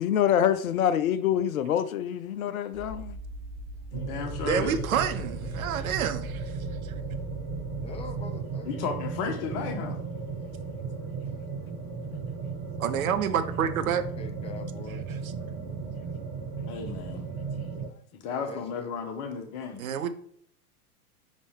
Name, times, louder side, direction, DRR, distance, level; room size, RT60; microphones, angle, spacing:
voice 1, 0.0-3.2, left 10 dB, 70° left, 0.5 m, -26 dB
sound 1, 2.7-8.2, equal, 20° right, 2.6 m, -39 dB
voice 2, 3.9-4.8 8.6-10.0 16.7-17.3 18.1-19.9, left 5 dB, 40° left, 1.5 m, -34 dB
sound 2, 3.9-17.9, right 5 dB, 50° right, 2.5 m, -36 dB
voice 3, 4.4-6.9 12.8-14.1 15.1-15.3 19.8-20.1, right 8 dB, 65° right, 0.8 m, -29 dB
voice 4, 7.7-8.8 10.3-10.5 14.2-15.1 18.5-19.2, left 4 dB, 15° left, 0.7 m, -44 dB
5.5 x 5.2 x 3.3 m
figure-of-eight pair, 90°, 45 cm